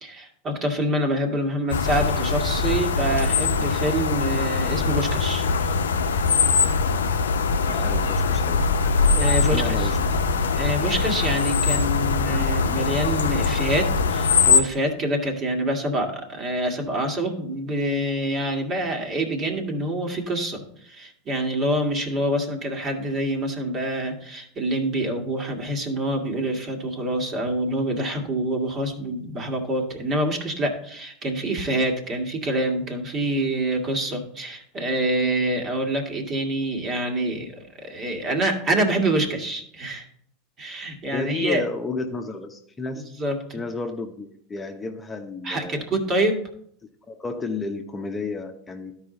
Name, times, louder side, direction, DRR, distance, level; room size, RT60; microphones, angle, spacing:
voice 1, 0.0-5.8 9.1-9.9 10.5-40.1 40.6-41.6 43.2-43.6 45.4-46.4, right 1 dB, 35° right, 2 dB, 1.9 m, -26 dB
sound 1, 1.7-14.6, left 5 dB, 90° left, 0.6 m, -22 dB
voice 2, 7.6-8.7 9.4-10.2 41.1-43.0 43.5-45.9 47.1-48.9, left 3 dB, 20° left, 3 dB, 0.9 m, -32 dB
12.5 x 4.9 x 3.9 m, 0.65 s
hypercardioid pair, 95°, 0 cm